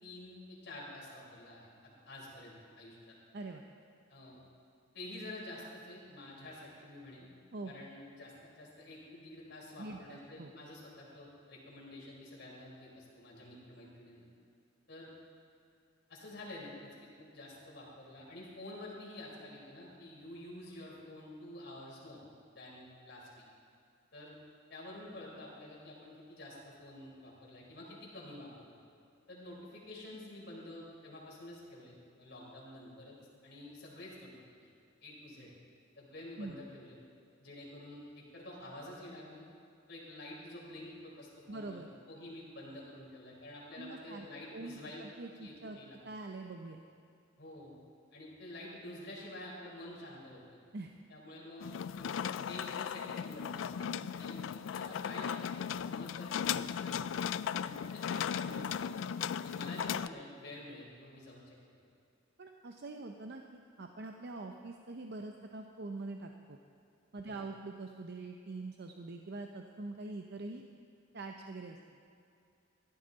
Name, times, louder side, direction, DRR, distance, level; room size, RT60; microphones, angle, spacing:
voice 1, 0.0-3.1 4.1-4.4 4.9-7.3 7.6-14.3 14.9-15.1 16.1-22.2 22.5-23.4 24.1-24.3 24.7-28.8 29.3-33.2 33.4-34.3 35.0-35.5 36.0-37.0 37.4-39.5 39.9-45.0 45.3-46.0 47.4-47.7 48.1-50.6 51.1-52.2 52.5-54.4 54.7-57.1 57.5-59.1 59.4-61.6 67.2-67.4, left 1 dB, 60° left, -4 dB, 3.9 m, -49 dB
sound 1, 6.5-7.5, right 1 dB, 35° right, 3.1 m, -66 dB
voice 2, 9.8-10.5 36.4-36.6 41.5-41.9 43.8-44.3 44.5-45.8 46.0-46.8 50.7-50.9 53.8-54.1 62.4-66.6 67.1-70.6 71.1-71.8, right 3 dB, 60° right, 4 dB, 0.6 m, -44 dB
sound 2, 51.6-60.1, left 8 dB, 80° left, 0.3 m, -37 dB
16.0 x 13.0 x 4.0 m, 2.5 s
head